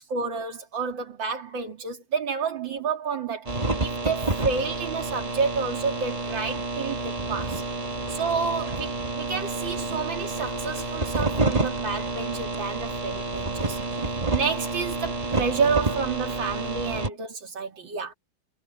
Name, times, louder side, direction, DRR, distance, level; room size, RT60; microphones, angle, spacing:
voice 1, 0.0-7.6 8.1-13.8 14.1-18.1, right 5 dB, 65° right, 3.2 m, -30 dB
sound 1, 3.5-17.1, right 3 dB, 20° right, 1.3 m, -29 dB
omnidirectional pair, 2.2 m